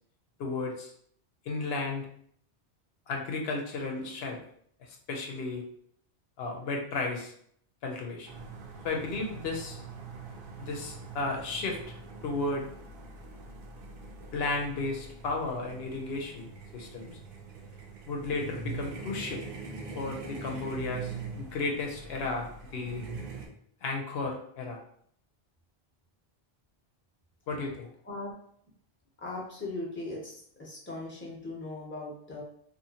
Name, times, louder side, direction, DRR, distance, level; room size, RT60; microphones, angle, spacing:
voice 1, 0.4-0.9 1.5-2.1 3.1-4.4 5.1-5.6 6.4-7.3 7.8-8.4 8.8-9.8 10.6-11.8 12.2-12.7 14.3-17.2 18.1-19.4 19.9-23.0 23.8-24.8 27.5-27.9, left 3 dB, 80° left, 1 dB, 0.8 m, -34 dB
sound 1, 8.3-23.5, right 4 dB, 65° right, 0.7 m, -43 dB
voice 2, 28.0-28.3 29.2-32.4, left 2 dB, 15° left, -4 dB, 0.7 m, -39 dB
2.8 x 2.4 x 2.7 m, 0.65 s
omnidirectional pair, 1.0 m